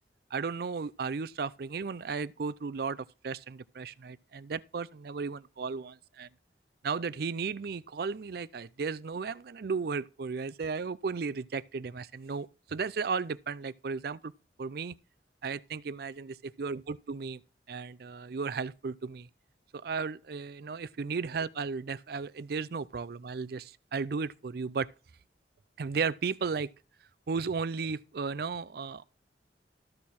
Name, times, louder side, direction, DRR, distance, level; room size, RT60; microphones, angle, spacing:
voice 1, 0.3-6.3 6.8-14.3 14.6-15.0 15.4-17.4 17.7-19.3 19.7-24.9 25.8-26.7 27.3-29.0, right 5 dB, 60° right, 0.4 m, -35 dB
13.0 x 6.5 x 4.2 m
head